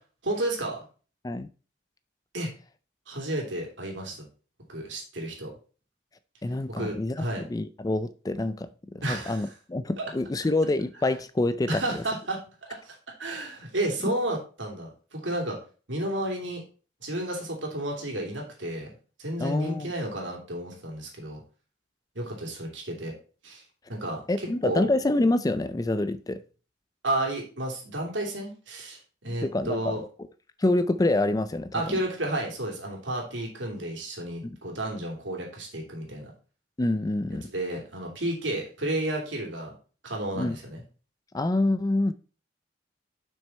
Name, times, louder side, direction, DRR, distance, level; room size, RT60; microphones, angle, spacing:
voice 1, 0.2-0.8 2.3-2.5 3.1-4.2 4.7-5.5 6.7-7.4 9.0-9.5 10.0-10.1 11.7-15.6 15.9-16.6 17.0-18.9 19.2-21.4 22.1-23.1 23.4-23.6 23.9-24.9 27.0-30.0 31.7-36.3 37.5-39.7 40.0-40.8, right 1 dB, 80° right, 2.8 m, -32 dB
voice 2, 6.4-7.2 7.5-12.0 14.0-14.1 19.4-19.9 24.3-26.4 29.4-29.9 30.6-31.7 36.8-37.5 40.4-40.6 41.3-42.1, left 2 dB, 20° left, 0.4 m, -26 dB
6.9 x 6.0 x 4.3 m
head